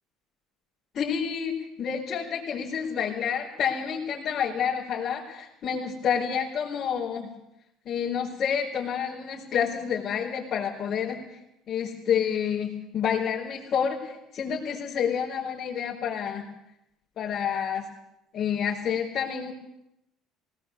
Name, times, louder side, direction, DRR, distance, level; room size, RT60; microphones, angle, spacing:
voice 1, 0.9-7.3 7.8-11.4 11.7-16.5 17.2-17.9 18.3-19.5, left 7 dB, 45° left, -5 dB, 4.6 m, -29 dB
19.5 x 18.5 x 8.2 m, 0.84 s
cardioid pair, 110°, 0 cm